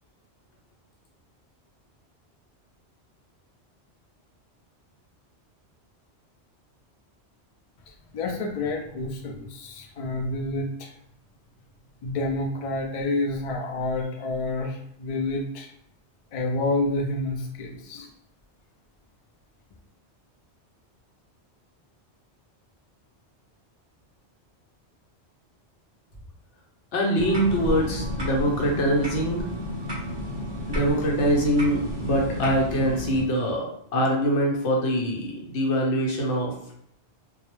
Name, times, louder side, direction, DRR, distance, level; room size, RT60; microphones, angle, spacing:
voice 1, 8.1-10.9 12.0-15.7 16.3-18.1, left 2 dB, 65° left, 2 dB, 0.3 m, -29 dB
voice 2, 26.9-29.5 30.7-36.5, equal, 85° left, -1 dB, 1.0 m, -24 dB
sound 1, 27.2-33.2, equal, 35° right, 0.4 m, -31 dB
2.3 x 2.1 x 2.9 m, 0.72 s
omnidirectional pair, 1.1 m